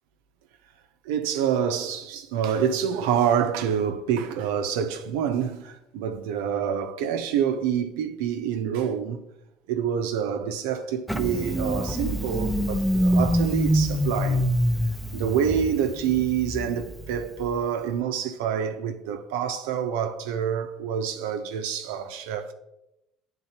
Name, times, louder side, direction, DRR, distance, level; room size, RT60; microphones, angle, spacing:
voice 1, 1.1-9.2 9.7-14.4 15.1-22.5, right 8 dB, 85° right, 0.6 m, -27 dB
Engine starting, 11.1-17.6, equal, ahead, 0.6 m, -25 dB
9.8 x 3.7 x 2.9 m
hypercardioid pair, 65°, 0 cm